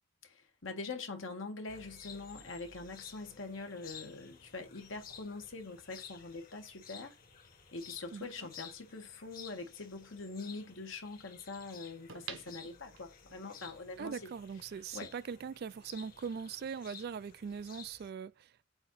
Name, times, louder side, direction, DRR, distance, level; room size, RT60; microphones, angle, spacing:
voice 1, 0.2-7.2 7.7-14.3 14.9-15.1, left 3 dB, 75° left, 1.8 m, -44 dB
sound 1, 1.7-18.1, left 7 dB, 45° left, 1.4 m, -54 dB
sound 2, 12.1-13.4 13.9-14.0, right 7 dB, 85° right, 1.2 m, -47 dB
voice 2, 14.0-18.6, right 6 dB, 50° right, 0.3 m, -41 dB
7.8 x 2.9 x 5.8 m
head